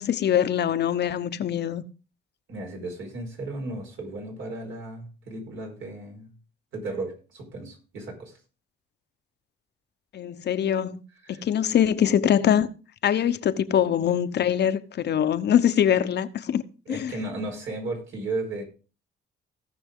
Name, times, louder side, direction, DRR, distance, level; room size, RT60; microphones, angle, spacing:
voice 1, 0.0-1.8 10.1-11.0 11.3-12.7 13.0-17.1, left 9 dB, 60° left, 0.9 m, -23 dB
voice 2, 2.5-6.3 6.7-8.4 11.2-11.4 16.9-18.6, right 2 dB, 75° right, 4.8 m, -34 dB
17.5 x 6.1 x 3.7 m
cardioid pair, 90°, 20 cm